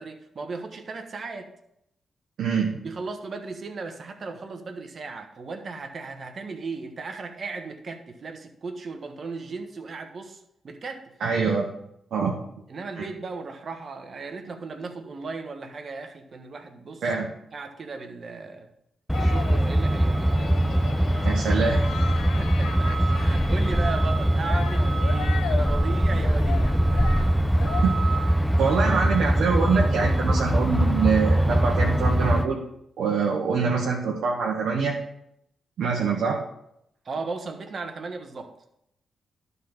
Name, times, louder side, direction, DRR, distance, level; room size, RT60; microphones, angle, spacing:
voice 1, 0.0-1.5 2.8-11.1 12.7-17.1 17.5-18.7 19.1-20.6 22.2-26.8 37.0-38.5, right 4 dB, 55° right, 6 dB, 1.3 m, -36 dB
voice 2, 2.4-2.8 11.2-11.7 12.1-12.4 13.0-13.1 17.0-17.3 21.2-21.8 27.8-27.9 28.6-32.6 33.0-35.0 35.8-36.4, right 5 dB, 75° right, -1 dB, 1.2 m, -24 dB
sound 1, 19.1-19.8 20.2-23.8 24.5-27.8, left 9 dB, 90° left, 0.5 m, -38 dB
Truck, 19.1-32.5, right 1 dB, ahead, 0.8 m, -22 dB
11.5 x 4.1 x 5.8 m, 0.79 s
supercardioid pair, 55°, 0 cm